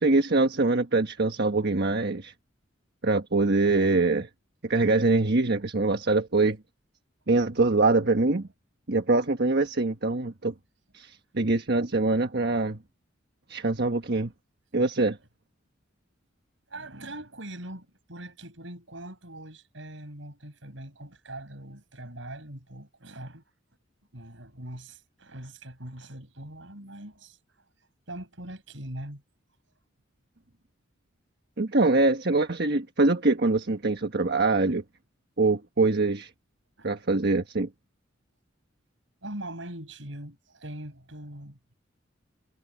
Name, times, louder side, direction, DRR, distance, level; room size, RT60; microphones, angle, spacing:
voice 1, 0.0-2.3 3.0-4.3 4.6-6.6 7.3-8.5 8.9-10.5 10.9-12.8 13.5-14.3 14.7-15.2 31.6-34.8 35.4-36.3 36.8-37.7, right 3 dB, 55° right, 1.4 m, -24 dB
voice 2, 16.7-23.4 24.1-27.4 28.1-29.2 36.8-36.9 39.2-41.6, right 1 dB, 70° right, 6.0 m, -41 dB
head